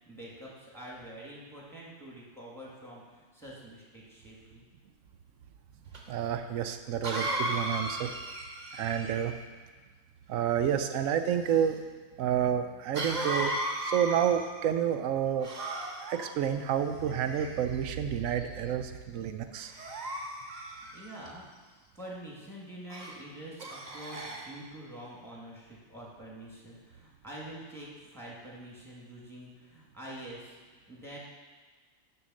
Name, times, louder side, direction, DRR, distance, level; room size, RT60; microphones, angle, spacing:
voice 1, 0.1-4.6 20.9-21.4 21.9-30.6 30.9-31.2, right 1 dB, ahead, -5 dB, 2.2 m, -46 dB
Cough, 5.9-6.0 7.0-9.4 12.9-14.7 15.4-16.3 17.1-17.8 18.4-18.7 19.7-21.3 22.9-23.2 23.6-24.5, right 1 dB, 35° right, 1.1 m, -36 dB
voice 2, 6.1-8.1 8.7-9.4 10.3-11.8 12.2-13.5 13.8-15.5 16.1-19.7, right 9 dB, 90° right, 7 dB, 1.0 m, -29 dB
6.9 x 6.6 x 6.4 m, 1.4 s
omnidirectional pair, 1.3 m